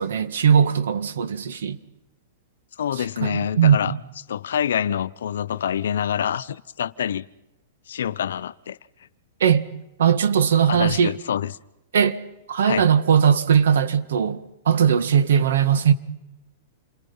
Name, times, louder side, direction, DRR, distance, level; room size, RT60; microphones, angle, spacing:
voice 1, 0.0-1.8 3.0-4.0 9.4-9.7 10.0-11.1 11.9-12.2 12.5-14.4 14.6-15.9, right 8 dB, 85° right, 1.7 m, -19 dB
voice 2, 2.8-3.9 4.3-7.2 7.9-8.8 10.7-11.6 12.6-12.8, left 9 dB, 85° left, 0.7 m, -26 dB
28.5 x 23.0 x 5.6 m
supercardioid pair, 175°, 0 cm